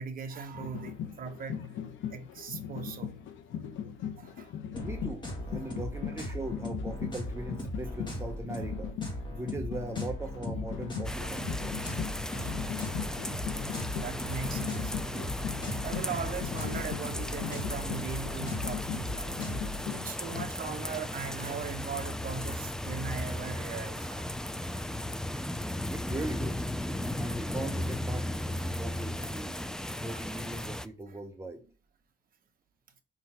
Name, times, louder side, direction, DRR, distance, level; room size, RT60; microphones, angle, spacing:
voice 1, 0.0-1.7 2.1-3.1 4.2-4.5 5.7-5.8 11.2-11.3 12.0-12.9 13.9-14.9 15.8-18.8 19.9-24.3 24.7-24.9 28.6-28.8 30.1-30.2 31.1-31.2, right 5 dB, 45° right, 1.1 m, -39 dB
sound 1, 0.5-20.5, left 9 dB, 80° left, 0.9 m, -39 dB
sound 2, 4.7-19.7, equal, 25° left, 1.8 m, -38 dB
voice 2, 4.8-9.0 9.3-11.8 25.9-26.7 27.2-29.5 29.8-31.6, right 2 dB, 15° right, 0.7 m, -40 dB
sound 3, 11.0-30.9, left 1 dB, 5° left, 0.3 m, -36 dB
5.5 x 3.9 x 4.3 m
cardioid pair, 110°, 20 cm